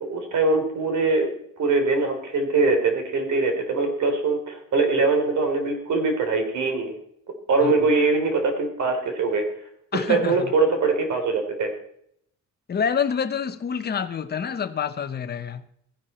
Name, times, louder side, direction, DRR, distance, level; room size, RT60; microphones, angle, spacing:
voice 1, 0.1-1.3 1.6-6.9 7.5-9.4 9.9-11.7, right 3 dB, 75° right, 3.5 m, -22 dB
voice 2, 9.9-10.5 12.7-15.6, left 7 dB, 35° left, 0.9 m, -27 dB
16.0 x 10.5 x 4.3 m
cardioid pair, 150°, 30 cm